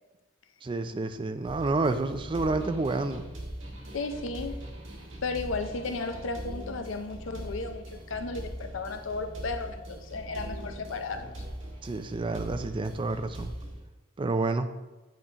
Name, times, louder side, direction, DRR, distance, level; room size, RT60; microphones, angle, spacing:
voice 1, 0.6-3.2 11.8-13.5 14.2-14.7, right 3 dB, 25° right, 9 dB, 0.4 m, -29 dB
wait for machine, 1.4-13.8, right 1 dB, 80° right, 1.5 m, -41 dB
voice 2, 3.9-4.6 5.2-11.5, left 3 dB, 80° left, 7 dB, 0.6 m, -34 dB
9.0 x 4.8 x 2.9 m, 1.1 s
head